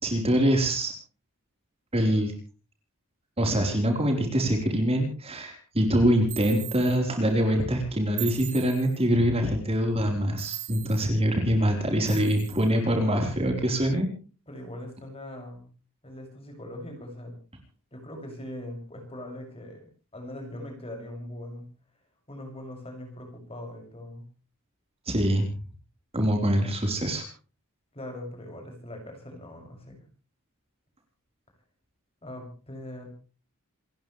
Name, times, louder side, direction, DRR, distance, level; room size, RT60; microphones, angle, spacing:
voice 1, 0.0-0.9 1.9-2.3 3.4-14.1 25.1-25.5 26.1-27.2, equal, 25° right, 3 dB, 4.2 m, -24 dB
sound 1, 6.3-7.0 8.2-9.1 10.4-11.1 12.1-12.7, right 19 dB, 65° right, 2.2 m, -39 dB
voice 2, 14.5-15.7 16.0-17.3 17.9-21.7 22.3-24.3 27.9-30.0 32.2-33.1, left 1 dB, 25° left, 3 dB, 6.7 m, -41 dB
28.5 x 15.0 x 3.3 m, 0.38 s
head